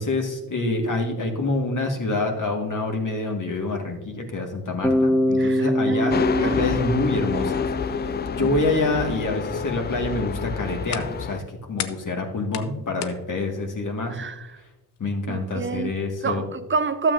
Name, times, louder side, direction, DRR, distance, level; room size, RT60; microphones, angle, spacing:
voice 1, 0.0-11.4 11.7-14.2 15.0-16.4, left 2 dB, 40° left, 1.9 m, -27 dB
Bass guitar, 4.8-8.9, equal, ahead, 1.3 m, -24 dB
voice 2, 5.4-6.7 8.4-8.5 14.1-14.5 15.3-16.0 16.2-17.1, right 5 dB, 25° right, 0.5 m, -28 dB
sound 1, 6.1-11.4, left 6 dB, 25° left, 0.4 m, -29 dB
sound 2, 10.3-16.2, left 11 dB, 80° left, 0.7 m, -40 dB
12.5 x 7.5 x 2.6 m
hypercardioid pair, 50°, 48 cm